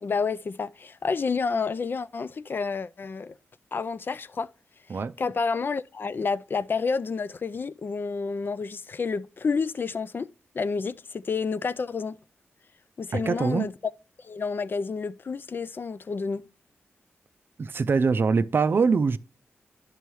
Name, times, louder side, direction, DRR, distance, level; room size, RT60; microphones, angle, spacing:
voice 1, 0.0-3.3 3.7-4.5 5.2-10.3 10.5-12.2 13.0-13.7 14.2-16.4, left 5 dB, 45° left, 0.3 m, -29 dB
voice 2, 13.1-13.7 17.6-19.2, right 5 dB, 45° right, 0.4 m, -23 dB
11.0 x 5.5 x 3.1 m
cardioid pair, 70°, 5 cm